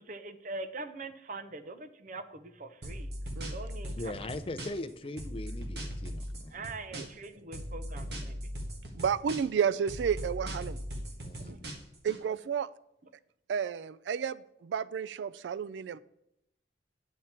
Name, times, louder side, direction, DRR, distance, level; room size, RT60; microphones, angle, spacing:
voice 1, 0.0-3.1 3.5-4.3 6.5-8.6 11.4-11.6, right 3 dB, 45° right, 10 dB, 0.7 m, -43 dB
sound 1, 2.8-4.9 5.2-7.3 7.5-9.6 9.9-12.2, equal, 65° right, 1.4 m, -39 dB
voice 2, 4.0-6.7 11.2-11.5, left 2 dB, 30° left, 10 dB, 0.5 m, -40 dB
voice 3, 8.9-10.8 12.0-12.7 13.5-16.0, right 7 dB, 85° right, 18 dB, 0.3 m, -31 dB
9.5 x 7.2 x 4.4 m, 0.80 s
head